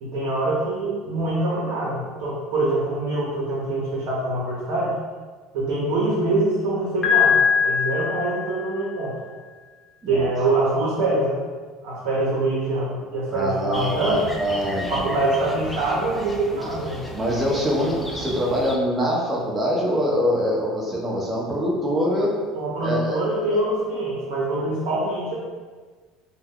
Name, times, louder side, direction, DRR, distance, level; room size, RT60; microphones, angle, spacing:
voice 1, 0.0-5.0 5.5-9.1 10.1-11.4 11.8-14.3 14.9-17.0 22.5-25.3, right 2 dB, 80° right, -7 dB, 0.8 m, -24 dB
Piano, 7.0-8.9, left 7 dB, 30° left, 0.9 m, -21 dB
voice 2, 13.3-15.1 17.1-22.3 22.8-23.2, equal, 20° right, -4 dB, 0.8 m, -24 dB
sound 1, 13.7-18.8, equal, 10° left, 0.4 m, -35 dB
2.6 x 2.2 x 3.6 m, 1.4 s
supercardioid pair, 115°, 0 cm